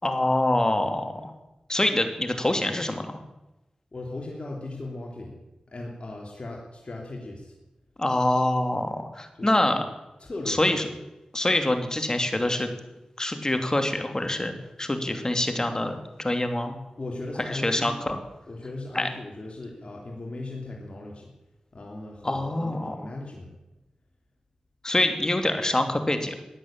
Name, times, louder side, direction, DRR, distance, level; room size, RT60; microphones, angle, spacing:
voice 1, 0.0-1.3 1.7-3.1 8.0-9.8 10.5-10.9 11.3-12.7 13.2-16.8 17.4-18.2 18.9-19.1 22.2-23.1 24.8-26.3, left 1 dB, 25° left, 6 dB, 2.8 m, -25 dB
voice 2, 3.9-5.3 5.7-7.5 9.4-9.5 10.2-10.7 15.0-15.2 17.0-18.0 18.5-21.3 21.7-23.5, left 2 dB, 50° left, -1 dB, 3.3 m, -37 dB
15.5 x 10.0 x 8.8 m, 0.98 s
cardioid pair, 45°, 2 cm